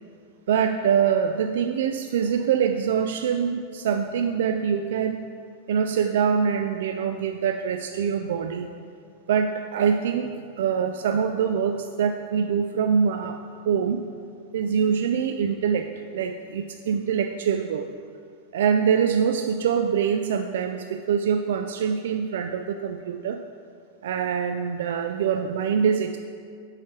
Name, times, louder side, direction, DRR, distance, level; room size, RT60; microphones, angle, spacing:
voice 1, 0.5-5.3 5.7-8.7 9.3-14.0 14.5-17.9 18.5-23.4 24.0-26.2, right 7 dB, 75° right, 7 dB, 0.3 m, -24 dB
7.3 x 4.8 x 5.9 m, 2.3 s
supercardioid pair, 155°, 0 cm